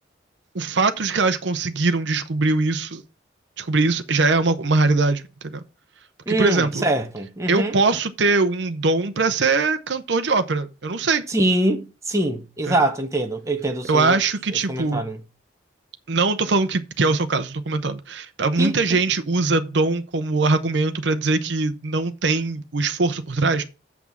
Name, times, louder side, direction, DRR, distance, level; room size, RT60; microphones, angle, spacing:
voice 1, 0.5-3.0 3.6-5.6 6.3-6.8 7.5-11.2 12.7-12.8 13.9-15.0 16.1-23.6, right 3 dB, 70° right, 0.7 m, -22 dB
voice 2, 6.3-7.7 11.3-14.2 14.7-15.2 18.6-19.0, right 1 dB, 15° right, 0.9 m, -23 dB
6.1 x 6.0 x 7.2 m
head